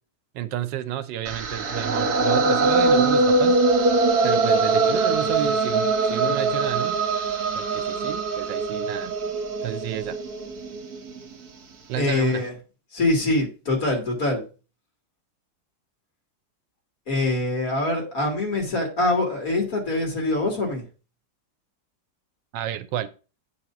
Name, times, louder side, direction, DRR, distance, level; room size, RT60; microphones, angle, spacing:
voice 1, 0.3-3.6 4.2-7.0 7.5-9.1 9.6-10.2 11.9-12.4 22.5-23.1, right 12 dB, 85° right, 1.3 m, -31 dB
sound 1, 1.3-11.3, right 3 dB, 65° right, 1.6 m, -22 dB
voice 2, 12.0-12.5 12.9-14.4 17.1-20.8, left 2 dB, 55° left, 2.5 m, -24 dB
7.9 x 2.8 x 5.9 m
omnidirectional pair, 1.9 m